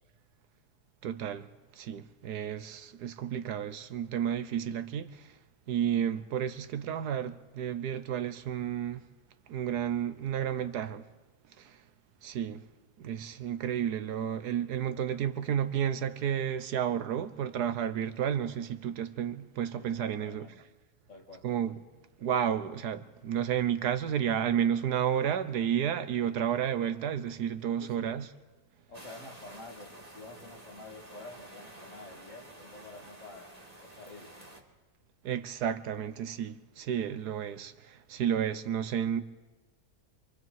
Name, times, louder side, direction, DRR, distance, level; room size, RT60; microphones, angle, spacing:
voice 1, 1.0-1.5 1.8-5.1 5.7-9.0 9.5-11.0 11.6-11.8 12.2-12.6 13.0-20.5 21.4-21.8 22.2-28.3 35.2-39.2, right 9 dB, 85° right, 1.5 m, -31 dB
voice 2, 19.8-20.6 21.1-21.5 27.8-28.1 28.9-34.4, left 3 dB, 50° left, 2.7 m, -49 dB
sound 1, 28.9-34.6, right 1 dB, 25° right, 2.6 m, -50 dB
27.0 x 24.5 x 4.7 m
omnidirectional pair, 1.7 m